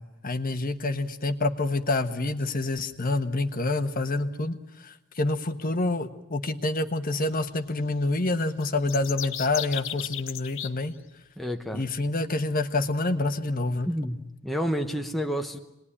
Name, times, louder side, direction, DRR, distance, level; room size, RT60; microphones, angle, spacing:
voice 1, 0.0-4.6 4.8-10.9 11.7-13.9, left 2 dB, 40° left, 8 dB, 1.3 m, -27 dB
sound 1, 8.6-10.7, left 12 dB, 65° left, 0.9 m, -35 dB
voice 2, 11.4-11.8 13.8-15.6, equal, ahead, 4 dB, 0.9 m, -30 dB
27.0 x 20.5 x 10.0 m, 0.91 s
head